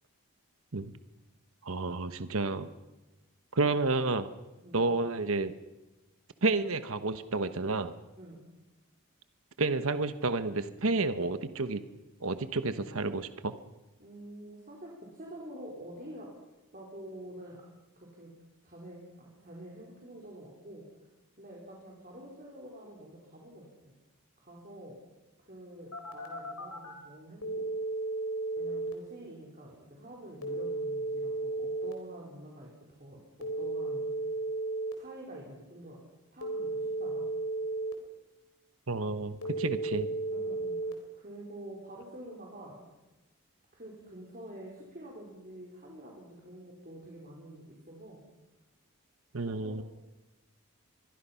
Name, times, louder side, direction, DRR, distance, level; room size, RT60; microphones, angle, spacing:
voice 1, 1.6-2.7 3.5-4.3 4.7-5.5 6.4-7.9 9.6-11.8 12.2-13.5 38.9-40.1 49.3-49.8, right 3 dB, 70° right, 10 dB, 1.1 m, -30 dB
voice 2, 14.0-16.3 16.7-17.6 18.0-18.3 18.6-20.8 21.4-23.9 24.4-25.0 25.4-27.6 28.6-34.1 34.9-36.0 36.3-37.3 39.8-40.0 40.3-42.8 43.7-48.2 49.4-49.8, right 1 dB, 40° right, -3 dB, 4.1 m, -47 dB
Telephone, 25.9-26.9 27.4-28.9 30.4-31.9 33.4-34.9 36.4-37.9 39.4-40.9, right 2 dB, 85° left, 4.1 m, -34 dB
24.5 x 22.0 x 5.8 m, 1.1 s
head